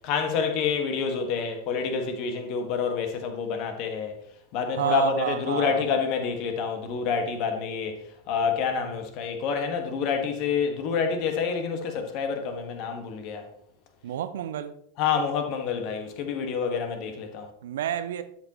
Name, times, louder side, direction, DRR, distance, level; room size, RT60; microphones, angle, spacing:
voice 1, 0.0-4.2 4.5-8.0 8.3-13.4 15.0-17.5, left 6 dB, 40° left, 1.8 m, -28 dB
voice 2, 4.7-5.8 14.0-14.8 17.6-18.2, right 10 dB, 60° right, 0.8 m, -29 dB
12.5 x 7.9 x 3.1 m
figure-of-eight pair, 90°, 0 cm